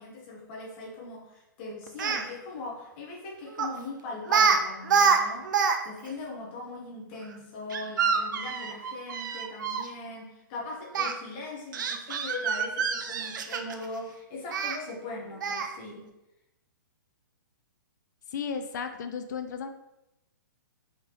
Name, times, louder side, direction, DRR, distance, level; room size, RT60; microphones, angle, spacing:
voice 1, 0.0-5.5 5.8-16.1, left 2 dB, 30° left, -1 dB, 0.8 m, -40 dB
Speech, 1.9-2.2 3.6-3.8 4.3-4.6 4.8-5.8 6.0-6.1 7.7-9.9 10.9-11.1 11.7-13.9 14.5-14.8 15.4-15.8, right 6 dB, 60° right, 0.4 m, -26 dB
voice 2, 18.3-19.7, left 6 dB, 55° left, 8 dB, 0.4 m, -34 dB
3.6 x 3.3 x 2.9 m, 0.91 s
hypercardioid pair, 160°, 11 cm